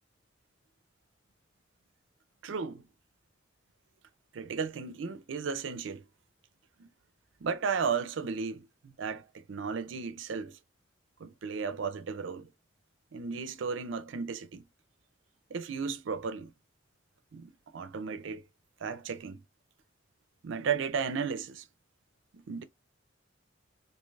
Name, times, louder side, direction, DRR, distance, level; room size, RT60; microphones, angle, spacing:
voice 1, 2.4-2.8 4.3-6.0 6.8-6.9 7.4-10.6 11.2-12.5 13.1-14.6 15.5-16.5 17.3-18.4 18.8-19.4 20.4-21.6 22.3-22.6, right 5 dB, 75° right, 0.4 m, -34 dB
3.1 x 2.8 x 2.3 m
head